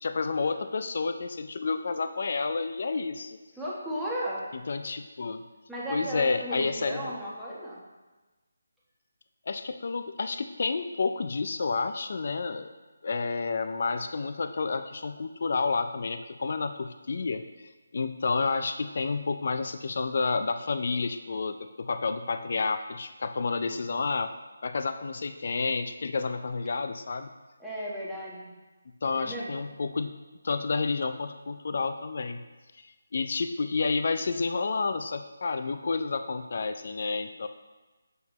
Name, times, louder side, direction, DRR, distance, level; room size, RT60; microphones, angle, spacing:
voice 1, 0.0-3.4 4.7-5.4 5.9-7.1 9.5-12.7 13.0-24.3 24.6-27.3 29.0-30.1 30.4-32.4 32.8-37.5, left 4 dB, 55° left, 9 dB, 0.4 m, -30 dB
voice 2, 3.6-4.4 5.7-7.8 27.6-28.5 29.2-29.5, equal, ahead, -9 dB, 1.2 m, -34 dB
7.1 x 5.9 x 3.0 m, 1.2 s
figure-of-eight pair, 160°, 0 cm